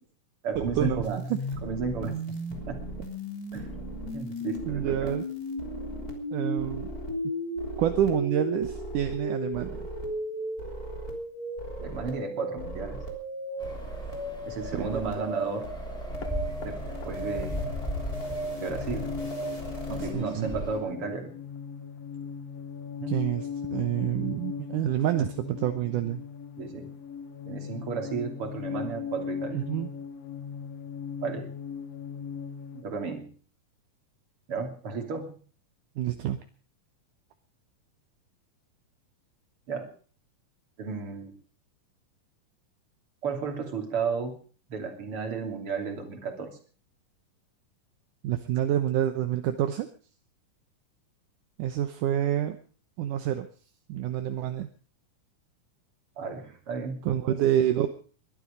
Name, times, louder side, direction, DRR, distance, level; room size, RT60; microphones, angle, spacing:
voice 1, 0.4-1.2 1.6-2.2 2.7-2.8 3.5-3.8 4.1-5.1 11.8-13.0 14.5-15.7 16.6-17.7 18.6-19.2 19.9-21.3 23.0-23.2 26.6-26.9 27.5-29.6 31.2-31.5 32.7-33.3 34.5-35.4 39.7-40.0 40.8-41.3 43.2-44.4 44.7-46.6 56.2-57.4, right 5 dB, 40° right, 5 dB, 3.6 m, -33 dB
sound 1, 0.5-20.1, equal, 25° left, 3.9 m, -35 dB
voice 2, 4.7-5.2 6.3-6.9 7.8-9.8 14.8-14.9 20.0-20.5 23.1-26.2 29.5-29.9 36.0-36.4 48.2-49.9 51.6-52.6 53.0-53.5 53.9-54.7 57.0-57.9, right 11 dB, 75° right, 8 dB, 2.5 m, -27 dB
sound 2, 13.6-20.8, equal, ahead, 4.4 m, -38 dB
sound 3, 16.1-32.8, left 7 dB, 55° left, 2.3 m, -38 dB
22.0 x 12.0 x 5.1 m, 0.40 s
omnidirectional pair, 3.8 m